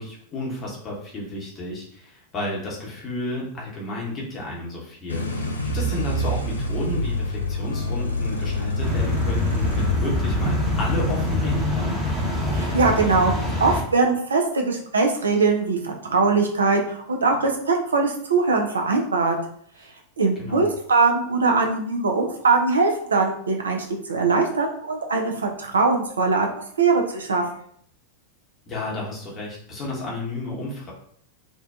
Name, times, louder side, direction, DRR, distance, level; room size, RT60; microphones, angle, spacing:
voice 1, 0.0-12.0 20.4-20.7 28.7-30.9, left 2 dB, 25° left, -4 dB, 0.9 m, -32 dB
sound 1, 5.1-11.6, left 1 dB, 80° left, 0.3 m, -27 dB
sound 2, 8.8-13.8, left 1 dB, 20° right, 0.8 m, -25 dB
voice 2, 12.5-13.3 13.6-19.4 20.2-26.5 26.8-27.4, right 4 dB, 70° right, 2 dB, 0.4 m, -21 dB
2.5 x 2.2 x 2.4 m, 0.64 s
figure-of-eight pair, 90°, 0 cm